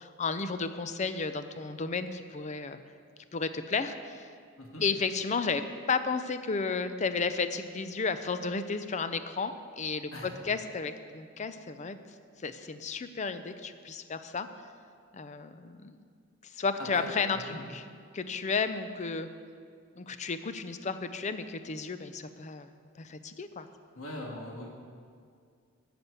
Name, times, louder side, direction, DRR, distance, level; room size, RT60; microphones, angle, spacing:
voice 1, 0.0-2.8 3.3-4.3 4.8-12.0 12.4-14.7 15.1-16.0 16.4-17.8 18.1-19.3 20.0-23.7, left 4 dB, 35° left, 10 dB, 0.5 m, -33 dB
voice 2, 17.0-17.6 24.0-24.7, left 1 dB, 90° left, -1 dB, 1.7 m, -41 dB
11.0 x 6.0 x 8.1 m, 2.2 s
head